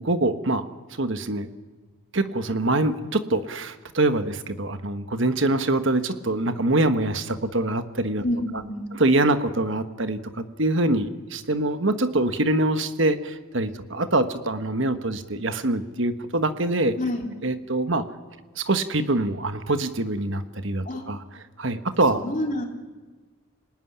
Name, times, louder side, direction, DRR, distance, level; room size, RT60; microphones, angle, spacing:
voice 1, 0.0-1.5 2.1-8.2 8.9-17.0 17.4-18.0 18.5-21.2 21.6-22.2, right 2 dB, 60° right, 9 dB, 1.4 m, -24 dB
voice 2, 8.2-8.9 17.0-17.3 20.8-21.0 22.1-22.7, left 1 dB, 35° left, 2 dB, 3.2 m, -28 dB
26.5 x 19.5 x 10.0 m, 1.3 s
head